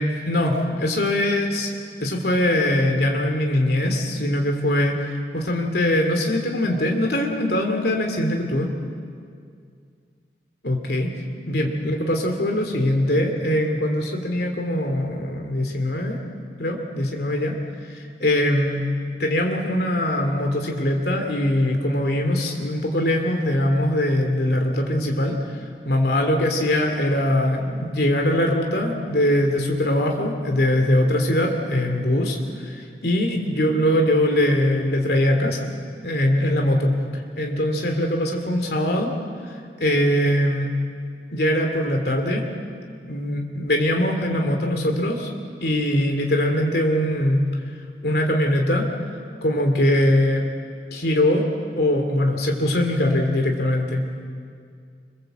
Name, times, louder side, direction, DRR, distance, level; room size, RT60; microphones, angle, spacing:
voice 1, 0.0-8.7 10.6-11.1 11.5-16.2 16.6-17.5 17.8-18.8 19.2-35.7 36.0-39.1 39.4-39.5 39.8-40.7 41.3-42.5 43.1-45.3 45.6-47.4 48.0-48.9 49.4-50.4 50.9-51.4 51.7-54.2, left 1 dB, 65° left, 3 dB, 2.5 m, -22 dB
26.5 x 21.5 x 7.9 m, 2.2 s
head